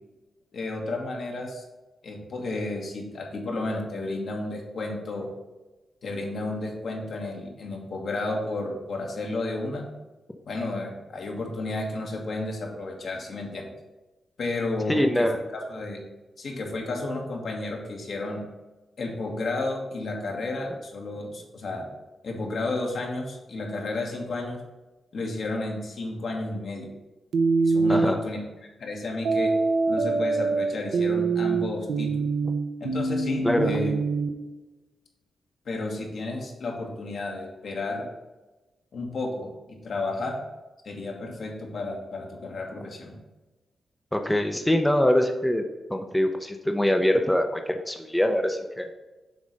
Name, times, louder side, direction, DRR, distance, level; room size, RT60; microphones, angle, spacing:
voice 1, 0.5-1.6 2.0-5.3 6.0-9.9 10.4-13.7 14.4-15.3 15.5-16.0 16.4-18.4 19.0-21.9 22.2-24.6 25.1-26.9 27.6-28.4 28.8-29.5 29.9-32.3 32.8-33.9 35.6-38.1 38.9-40.4 40.8-43.2, left 2 dB, 65° left, 0 dB, 1.4 m, -32 dB
voice 2, 14.9-15.4 27.9-28.2 33.4-33.7 44.1-45.6 45.9-48.9, left 1 dB, 5° left, 5 dB, 0.5 m, -23 dB
sound 1, 27.3-28.1 29.3-34.3, right 4 dB, 80° right, 0.6 m, -24 dB
7.1 x 3.2 x 5.2 m, 1.1 s
cardioid pair, 90°, 0 cm